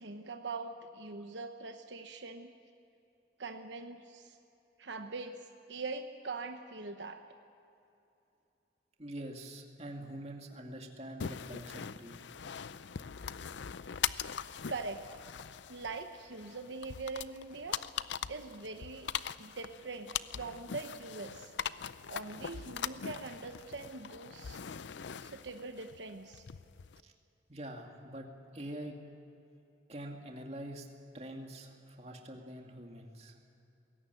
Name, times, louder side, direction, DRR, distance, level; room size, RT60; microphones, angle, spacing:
voice 1, 0.0-2.5 3.4-4.4 4.8-5.4 5.7-7.2 14.7-15.0 15.7-17.8 18.3-19.1 19.4-21.5 22.1-24.6 25.2-26.4, right 3 dB, 75° right, 6 dB, 1.0 m, -42 dB
voice 2, 9.0-12.2 27.0-27.1 27.5-28.3 28.5-29.0 29.9-30.9 31.1-33.3, right 1 dB, 35° right, 2 dB, 2.3 m, -45 dB
sound 1, 11.2-27.0, left 8 dB, 75° left, 0.5 m, -41 dB
21.0 x 17.5 x 9.2 m, 2.8 s
head